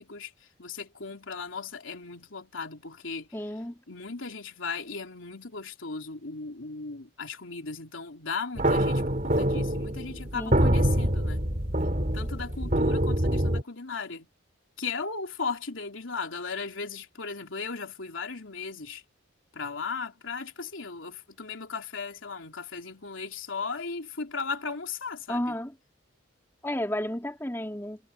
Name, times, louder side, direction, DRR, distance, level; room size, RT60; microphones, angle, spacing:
voice 1, 0.0-3.3 3.9-11.5 12.1-14.3 14.8-19.0 19.5-25.6, left 4 dB, 85° left, 3.3 m, -37 dB
voice 2, 3.3-3.7 10.3-10.7 25.3-25.7 26.6-28.0, left 1 dB, 10° left, 3.2 m, -32 dB
sound 1, 8.6-13.6, right 1 dB, 40° right, 3.8 m, -25 dB
head